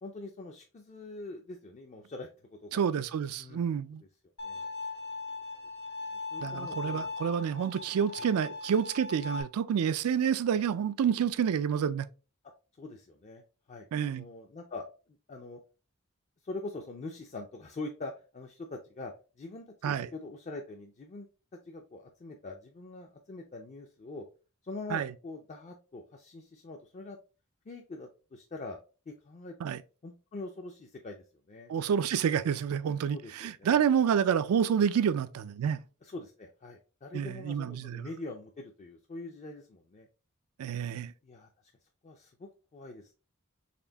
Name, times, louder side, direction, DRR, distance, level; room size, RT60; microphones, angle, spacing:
voice 1, 0.0-2.3 2.6-2.8 3.4-3.7 4.0-4.1 4.4-4.7 6.1-7.1 8.1-8.3 12.8-13.4 13.7-14.9 15.3-15.6 16.4-21.3 21.7-24.2 24.6-27.2 27.7-28.8 29.1-31.7 33.1-33.8 36.0-40.1 41.2-41.5 42.0-43.1, left 2 dB, 35° left, 0.4 m, -44 dB
voice 2, 2.7-4.0 6.4-12.1 13.9-14.2 19.8-20.1 24.9-25.1 29.6-29.8 31.7-35.8 37.1-38.1 40.6-41.1, right 8 dB, 85° right, 0.3 m, -28 dB
Bowed string instrument, 4.4-9.4, left 3 dB, 55° left, 1.0 m, -39 dB
4.2 x 3.3 x 2.8 m
head